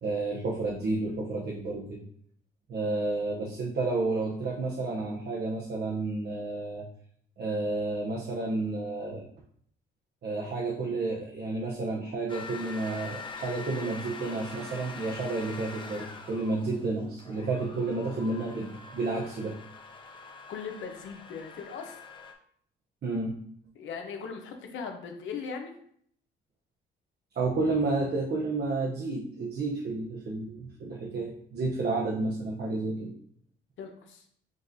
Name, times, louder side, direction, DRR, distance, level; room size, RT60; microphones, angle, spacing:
voice 1, 0.0-2.0 2.7-6.9 7.4-9.3 10.2-19.6 23.0-23.3 27.3-33.1, right 3 dB, 55° right, -2 dB, 0.8 m, -31 dB
sound 1, 12.3-22.3, left 4 dB, 25° left, 0.6 m, -44 dB
voice 2, 20.5-22.0 23.7-25.7 33.8-34.2, left 6 dB, 75° left, 4 dB, 0.8 m, -39 dB
6.3 x 2.4 x 2.6 m, 0.63 s
cardioid pair, 90°, 20 cm